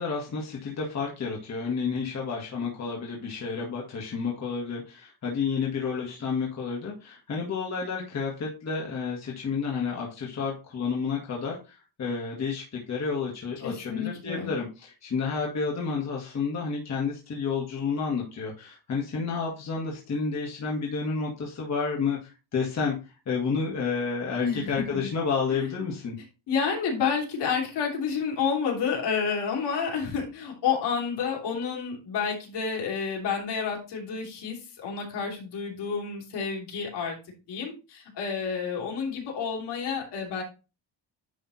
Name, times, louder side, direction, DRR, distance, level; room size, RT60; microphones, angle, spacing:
voice 1, 0.0-23.0 23.3-26.2, left 5 dB, 40° left, -2 dB, 1.8 m, -30 dB
voice 2, 13.6-14.6 24.4-25.1 25.5-25.7 26.5-37.2 37.5-40.4, left 6 dB, 70° left, -1 dB, 3.1 m, -30 dB
10.0 x 3.6 x 4.2 m, 0.30 s
cardioid pair, 150°, 43 cm